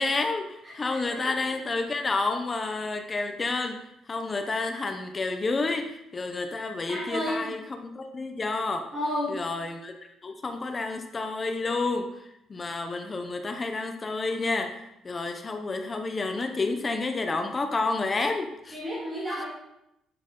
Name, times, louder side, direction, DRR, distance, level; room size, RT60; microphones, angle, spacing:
voice 1, 0.0-3.8 4.1-8.9 9.3-9.9 10.2-12.2 12.5-18.8, left 3 dB, 20° left, 6 dB, 0.7 m, -30 dB
voice 2, 0.6-1.4 6.9-7.5 8.9-9.4 18.7-19.5, left 1 dB, 15° right, -9 dB, 2.2 m, -32 dB
11.0 x 6.4 x 3.8 m, 0.82 s
cardioid pair, 175°, 0 cm